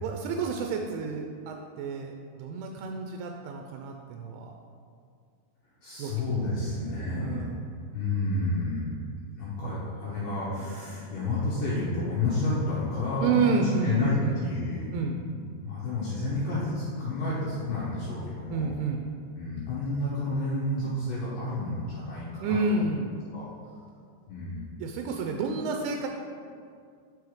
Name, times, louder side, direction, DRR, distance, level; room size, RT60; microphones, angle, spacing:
voice 1, 0.0-4.5 6.0-6.3 6.7-7.6 9.6-9.9 13.2-14.4 14.9-15.2 18.5-19.0 22.4-23.1 24.8-26.1, right 4 dB, 85° right, 2 dB, 3.0 m, -30 dB
voice 2, 5.8-7.5 7.9-8.9 9.3-14.9 15.3-18.7 19.3-22.8 23.3-23.4 24.3-24.8, left 2 dB, 85° left, -8 dB, 1.9 m, -30 dB
6.7 x 4.9 x 4.7 m, 2.2 s
omnidirectional pair, 5.5 m